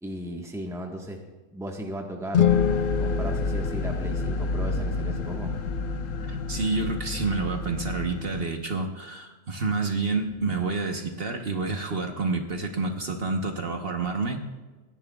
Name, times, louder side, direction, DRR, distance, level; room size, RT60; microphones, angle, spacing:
voice 1, 0.0-2.6 3.0-5.5, right 1 dB, ahead, 1 dB, 1.3 m, -36 dB
sound 1, 2.2-4.5, left 8 dB, 55° left, 0.6 m, -25 dB
sound 2, 2.5-8.4, left 3 dB, 85° left, 1.1 m, -30 dB
voice 2, 6.2-14.5, right 3 dB, 50° right, 3 dB, 1.3 m, -29 dB
28.5 x 10.5 x 2.4 m, 1.3 s
omnidirectional pair, 1.3 m